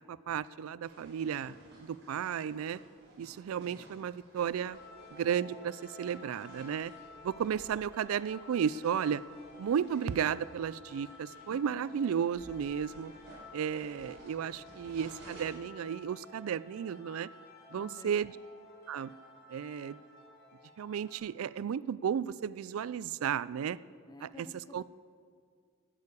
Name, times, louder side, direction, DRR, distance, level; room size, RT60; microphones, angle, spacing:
voice 1, 0.0-2.8 3.2-4.8 5.1-6.9 7.2-9.2 9.6-13.1 13.5-17.3 17.7-18.3 18.9-19.1 19.5-20.0 20.8-23.8 24.2-24.5 24.7-24.8, right 8 dB, 90° right, 19 dB, 0.3 m, -34 dB
sound 1, 0.8-15.4, right 1 dB, 55° right, 4.4 m, -57 dB
sound 2, 4.7-21.1, left 2 dB, 50° left, 4.2 m, -53 dB
voice 2, 17.7-18.2 24.1-24.8, left 2 dB, 20° left, 12 dB, 0.4 m, -51 dB
11.0 x 9.7 x 8.4 m, 2.1 s
head